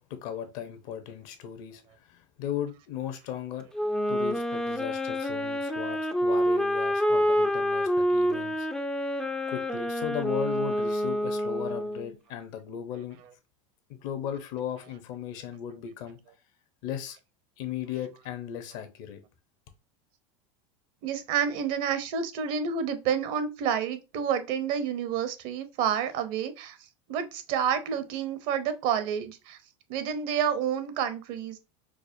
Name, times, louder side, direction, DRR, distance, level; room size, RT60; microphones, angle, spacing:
voice 1, 0.1-1.8 2.1-3.7 4.1-8.7 9.5-13.2 13.9-16.2 16.8-17.2 17.6-19.2, left 9 dB, 60° left, 0.8 m, -36 dB
Wind instrument woodwind instrument, 3.7-12.1, equal, 5° left, 0.3 m, -27 dB
voice 2, 21.0-26.8 27.1-29.6 29.9-31.6, right 8 dB, 55° right, 0.7 m, -29 dB
4.7 x 2.1 x 2.6 m
supercardioid pair, 120°, 16 cm